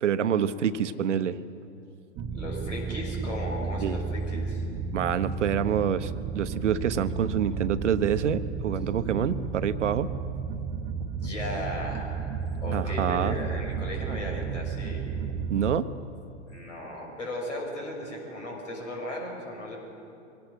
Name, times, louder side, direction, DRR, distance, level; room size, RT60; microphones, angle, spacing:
voice 1, 0.0-1.4 3.8-4.0 4.9-10.1 12.7-13.4 15.5-15.9, right 8 dB, 70° right, 13 dB, 0.9 m, -27 dB
sound 1, 2.2-15.8, right 5 dB, 30° right, 1.0 m, -33 dB
voice 2, 2.3-4.6 11.1-15.0 16.5-19.8, left 1 dB, 80° left, 0 dB, 6.3 m, -36 dB
23.5 x 18.0 x 6.2 m, 2.6 s
figure-of-eight pair, 100°, 37 cm